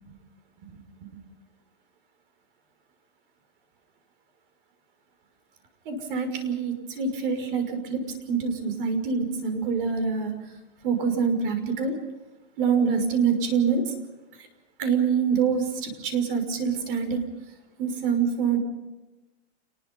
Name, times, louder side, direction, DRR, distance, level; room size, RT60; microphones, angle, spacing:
voice 1, 5.9-8.0 8.3-10.3 10.8-11.9 12.6-13.8 14.8-17.2 17.8-18.6, right 6 dB, 50° right, 7 dB, 6.0 m, -25 dB
28.5 x 21.0 x 5.6 m, 1.1 s
supercardioid pair, 160°, 34 cm